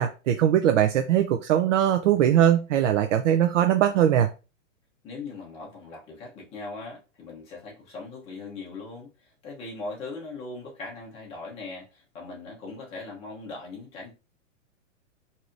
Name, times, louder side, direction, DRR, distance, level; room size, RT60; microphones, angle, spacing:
voice 1, 0.0-4.3, right 10 dB, 65° right, 0.6 m, -21 dB
voice 2, 5.0-14.1, left 3 dB, 15° left, 0.9 m, -40 dB
4.7 x 2.8 x 2.6 m
supercardioid pair, 165°, 39 cm